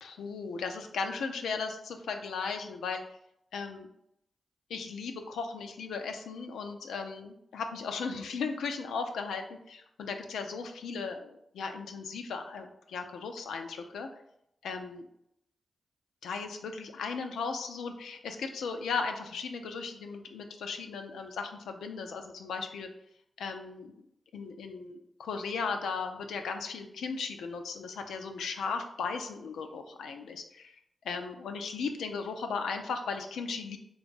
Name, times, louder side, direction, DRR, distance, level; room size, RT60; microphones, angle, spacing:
voice 1, 0.0-3.0 3.5-3.9 4.7-14.1 14.6-15.1 16.2-22.9 23.4-24.0 24.3-30.7 31.0-33.8, left 5 dB, 90° left, 5 dB, 0.4 m, -36 dB
3.4 x 2.3 x 3.9 m, 0.77 s
supercardioid pair, 45°, 0 cm